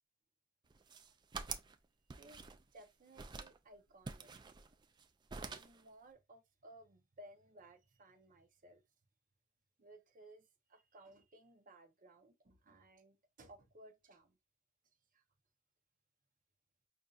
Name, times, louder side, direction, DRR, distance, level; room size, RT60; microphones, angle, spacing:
sound 1, 0.7-1.8 2.1-2.8 3.2-3.6 4.1-5.0 5.3-5.8, right 5 dB, 20° right, 0.3 m, -47 dB
voice 1, 2.2-4.3 5.4-8.8 9.8-14.4 15.1-15.2, right 1 dB, 40° right, 0.8 m, -60 dB
5.2 x 2.7 x 2.4 m
head